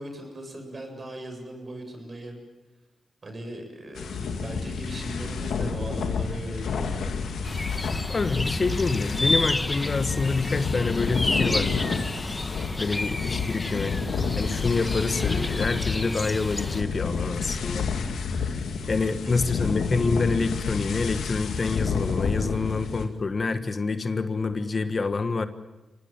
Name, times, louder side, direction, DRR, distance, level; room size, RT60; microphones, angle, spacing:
voice 1, 0.0-2.4 3.2-7.3 8.3-8.4 12.9-13.0 19.0-19.6 22.6-22.7, right 1 dB, 45° right, 5 dB, 7.6 m, -39 dB
sound 1, 4.0-23.0, left 5 dB, 85° left, 2.6 m, -30 dB
sound 2, 7.4-16.8, left 2 dB, 20° left, 1.4 m, -31 dB
voice 2, 8.1-11.8 12.8-13.9 14.4-17.9 18.3-18.6 18.9-25.5, left 4 dB, 45° left, 10 dB, 1.4 m, -27 dB
25.0 x 18.0 x 9.0 m, 1.1 s
cardioid pair, 55°, 0 cm